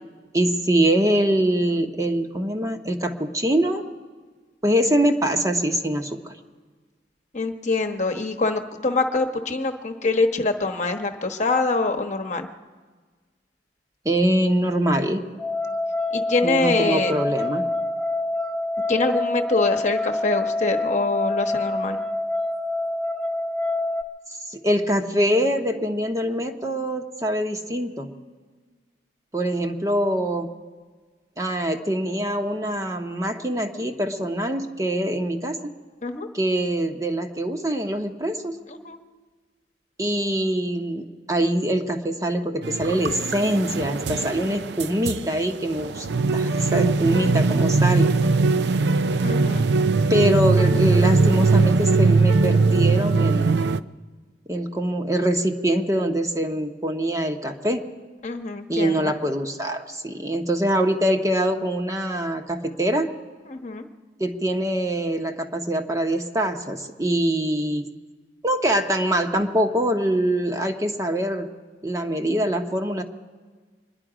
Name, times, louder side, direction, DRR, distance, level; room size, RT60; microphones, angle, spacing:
voice 1, 0.3-3.8 4.6-6.3 14.0-15.2 16.4-17.6 24.5-28.1 29.3-30.5 31.4-35.7 36.3-38.6 40.0-46.1 46.3-48.1 50.1-53.6 54.5-57.9 58.7-63.1 64.2-67.9 68.4-71.5 71.8-73.0, right 1 dB, 20° right, 4 dB, 0.9 m, -24 dB
voice 2, 7.3-12.5 16.1-17.1 18.9-22.0 36.0-36.3 38.7-39.0 49.2-49.7 58.2-59.1 63.5-63.9, left 3 dB, 40° left, 5 dB, 1.1 m, -24 dB
sound 1, 15.4-24.0, left 2 dB, 5° left, 0.7 m, -26 dB
sound 2, 42.6-53.8, right 3 dB, 65° right, 0.5 m, -20 dB
25.5 x 10.5 x 4.9 m, 1.4 s
head